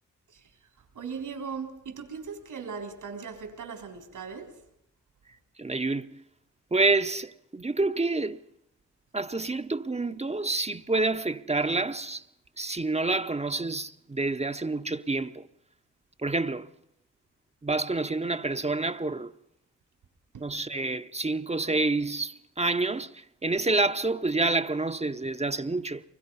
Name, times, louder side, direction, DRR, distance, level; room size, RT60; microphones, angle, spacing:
voice 1, 0.8-4.6 20.3-20.5, right 5 dB, 85° right, 3.9 m, -39 dB
voice 2, 5.6-6.2 6.7-8.4 9.1-12.2 12.6-15.5 16.2-16.7 17.6-19.3 20.4-26.0, right 3 dB, 20° right, 0.8 m, -28 dB
23.5 x 21.0 x 5.6 m
cardioid pair, 55°, 31 cm